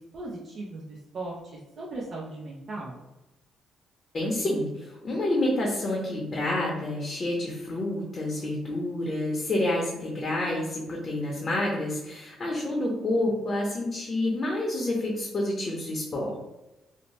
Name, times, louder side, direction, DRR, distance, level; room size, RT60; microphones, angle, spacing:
voice 1, 0.1-1.4 1.8-3.0, right 2 dB, 55° right, -4 dB, 0.5 m, -37 dB
voice 2, 4.1-16.4, left 1 dB, 40° left, -2 dB, 0.6 m, -28 dB
2.6 x 2.0 x 3.0 m, 0.98 s
cardioid pair, 90°, 0 cm